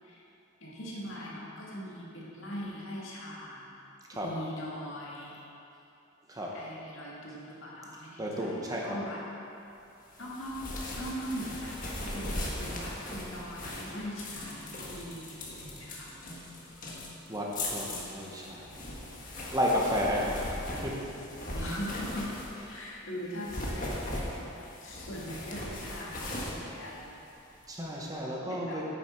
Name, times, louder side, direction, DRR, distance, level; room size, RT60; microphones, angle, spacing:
voice 1, 0.6-3.7 4.1-5.4 6.5-8.5 8.8-9.2 10.2-10.6 10.9-16.1 21.5-22.4 22.7-27.1 28.5-28.8, equal, 65° left, -5 dB, 1.9 m, -40 dB
voice 2, 8.2-9.0 17.3-18.8 19.5-21.0 21.5-21.7 27.7-28.9, equal, 15° right, -3 dB, 0.9 m, -32 dB
sound 1, 10.1-22.8 23.3-27.6, left 1 dB, 40° left, 1.4 m, -39 dB
9.6 x 7.0 x 4.4 m, 2.8 s
head